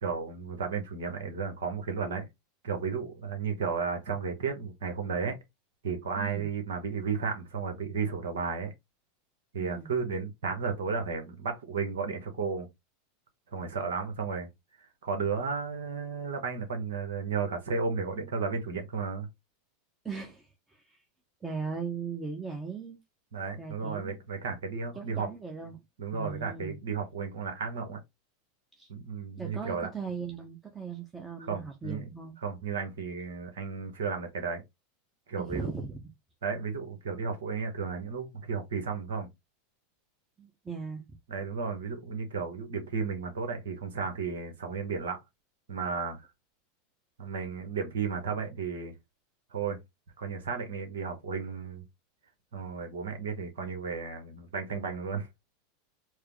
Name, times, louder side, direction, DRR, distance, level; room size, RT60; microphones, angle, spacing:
voice 1, 0.0-2.2 2.6-5.3 5.8-8.7 9.5-12.7 13.5-14.5 15.0-19.3 23.3-25.3 26.0-28.0 28.9-29.9 31.5-32.0 32.4-34.6 35.3-35.7 36.4-39.3 41.3-45.2 45.7-46.2 47.2-48.9 49.5-49.8 50.2-51.8 52.5-55.3, right 5 dB, 70° right, 1.0 m, -33 dB
voice 2, 6.2-6.5 9.6-9.9 20.0-21.0 21.4-23.0 23.6-24.2 24.9-25.8 26.1-26.8 28.8-28.9 29.4-32.4 35.4-36.1 40.4-41.0, right 5 dB, 15° right, 0.8 m, -38 dB
4.7 x 2.0 x 3.0 m
hypercardioid pair, 90°, 0 cm